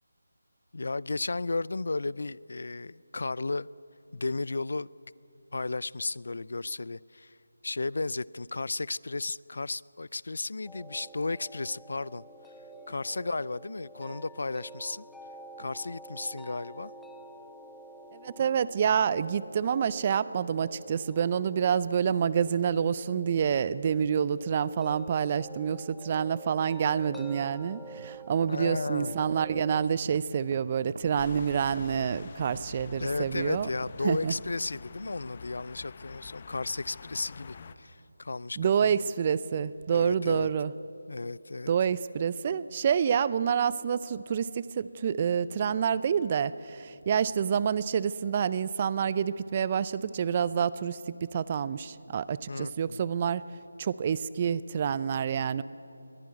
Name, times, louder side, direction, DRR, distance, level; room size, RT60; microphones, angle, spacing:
voice 1, 0.7-3.7 4.1-4.9 5.5-7.4 7.6-12.2 12.9-15.1 15.6-16.9 28.5-29.3 33.0-39.0 39.9-40.5 41.1-41.7 52.5-53.1, left 3 dB, 65° left, 23 dB, 0.4 m, -34 dB
sound 1, 10.7-29.9, right 3 dB, 5° left, 0.9 m, -48 dB
voice 2, 18.1-33.7 34.0-34.3 38.6-40.7 41.7-53.4 53.8-55.6, right 7 dB, 30° right, 18 dB, 0.5 m, -28 dB
sound 2, 27.8-34.5, right 3 dB, 65° right, 0.8 m, -45 dB
sound 3, 31.2-37.7, left 5 dB, 35° left, 1.0 m, -46 dB
22.0 x 15.0 x 9.9 m, 2.9 s
figure-of-eight pair, 160°, 0 cm